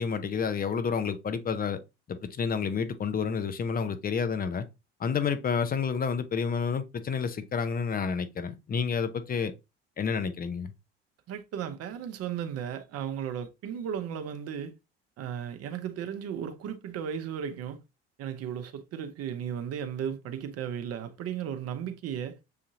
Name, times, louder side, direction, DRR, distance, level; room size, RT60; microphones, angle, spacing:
voice 1, 0.0-1.8 2.1-4.7 5.0-9.5 10.0-10.7, left 6 dB, 30° left, 0.7 m, -29 dB
voice 2, 11.3-14.7 15.2-17.8 18.2-22.4, right 8 dB, 50° right, 0.8 m, -35 dB
6.6 x 2.7 x 2.6 m
hypercardioid pair, 60°, 31 cm